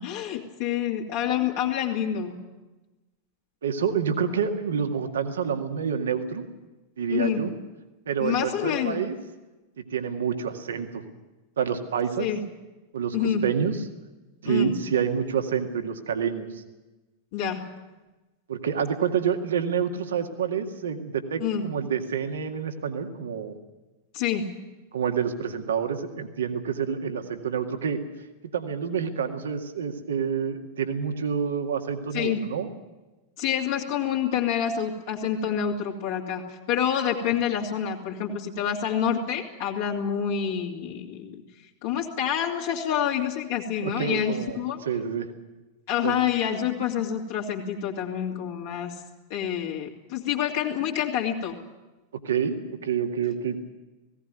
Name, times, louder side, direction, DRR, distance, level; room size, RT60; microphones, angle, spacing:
voice 1, 0.0-2.4 7.1-7.4 8.2-9.0 12.2-12.4 13.1-13.5 14.4-14.7 17.3-17.7 21.4-21.7 24.1-24.5 32.1-32.4 33.4-41.4 41.8-44.8 45.9-49.0 49.3-51.6, left 9 dB, 50° left, -2 dB, 2.7 m, -27 dB
voice 2, 3.6-6.5 7.0-7.6 8.1-9.2 9.8-11.0 11.6-12.3 12.9-13.8 14.4-16.6 18.5-23.6 24.9-28.0 28.5-32.7 43.8-45.3 46.0-46.2 52.2-53.6, right 7 dB, 65° right, 6 dB, 2.0 m, -28 dB
18.5 x 17.0 x 9.2 m, 1.1 s
figure-of-eight pair, 90°, 0 cm